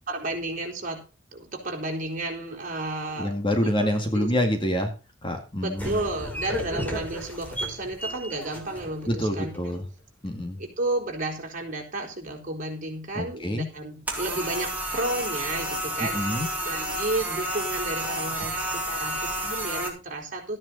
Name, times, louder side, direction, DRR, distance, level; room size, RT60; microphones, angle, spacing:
voice 1, 0.1-1.0 1.3-3.3 3.8-4.3 5.6-9.5 10.6-20.6, right 2 dB, 40° right, 1 dB, 4.3 m, -32 dB
voice 2, 3.2-4.9 5.2-6.0 9.1-9.8 10.2-10.6 13.2-13.7 16.0-16.5, equal, 25° left, 5 dB, 2.1 m, -26 dB
sound 1, 5.8-9.8, equal, 10° left, 3.6 m, -34 dB
sound 2, 14.1-19.9, equal, 10° right, 3.8 m, -30 dB
14.0 x 9.9 x 4.0 m, 0.33 s
head